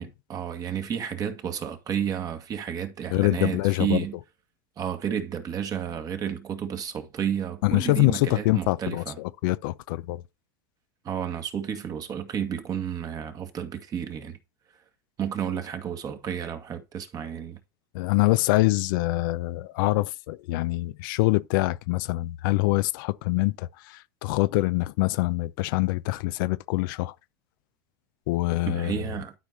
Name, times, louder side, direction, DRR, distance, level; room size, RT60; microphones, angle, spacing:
voice 1, 0.0-4.2 4.8-9.2 11.0-14.4 15.2-17.6 28.7-29.3, right 8 dB, 30° right, 1.9 m, -31 dB
voice 2, 3.1-4.0 7.6-10.2 17.9-27.1 28.3-29.0, left 19 dB, 65° left, 0.7 m, -25 dB
12.0 x 4.8 x 4.1 m
supercardioid pair, 115°, 12 cm